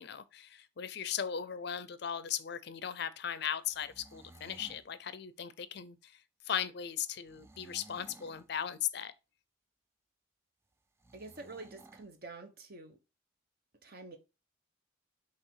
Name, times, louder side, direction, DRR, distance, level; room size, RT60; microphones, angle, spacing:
voice 1, 0.0-6.1 6.5-9.1, left 9 dB, 55° left, 0.5 m, -38 dB
sound 1, 3.6-4.9 7.2-8.5 11.0-12.1, right 2 dB, 15° right, 0.3 m, -56 dB
voice 2, 11.1-13.0 13.8-14.2, right 3 dB, 50° right, 1.1 m, -47 dB
5.4 x 3.4 x 5.5 m
head